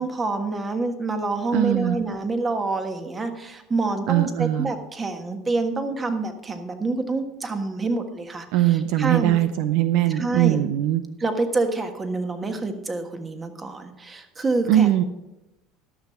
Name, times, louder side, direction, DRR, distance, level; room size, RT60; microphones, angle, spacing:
voice 1, 0.0-8.5 9.0-9.4 10.1-10.6 11.2-15.0, right 3 dB, 25° right, 7 dB, 1.5 m, -27 dB
voice 2, 1.5-2.0 4.1-4.7 8.5-11.0 14.7-15.0, right 13 dB, 70° right, 11 dB, 0.6 m, -21 dB
12.5 x 6.2 x 5.8 m, 0.94 s
supercardioid pair, 100°, 0 cm